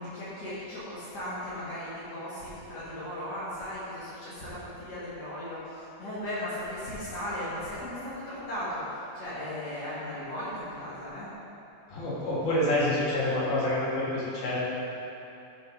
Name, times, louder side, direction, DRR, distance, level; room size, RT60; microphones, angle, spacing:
voice 1, 0.0-11.3, left 1 dB, 40° left, -11 dB, 1.5 m, -37 dB
voice 2, 11.9-14.6, left 1 dB, 65° left, -7 dB, 3.9 m, -27 dB
14.5 x 6.7 x 3.9 m, 2.9 s
omnidirectional pair, 5.0 m